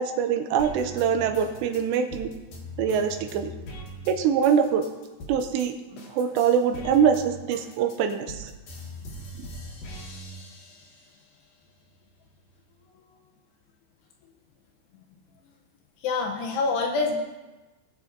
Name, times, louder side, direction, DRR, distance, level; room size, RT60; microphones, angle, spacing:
voice 1, 0.0-2.3 2.8-3.5 4.1-4.9 5.3-8.5 9.4-9.5, right 7 dB, 85° right, 6 dB, 2.6 m, -24 dB
sound 1, 0.6-5.7 6.0-11.2 11.6-12.6, equal, 55° left, 2.9 m, -41 dB
voice 2, 16.0-17.2, left 3 dB, 90° left, 2 dB, 2.4 m, -26 dB
20.5 x 7.0 x 2.6 m, 1.2 s
omnidirectional pair, 5.6 m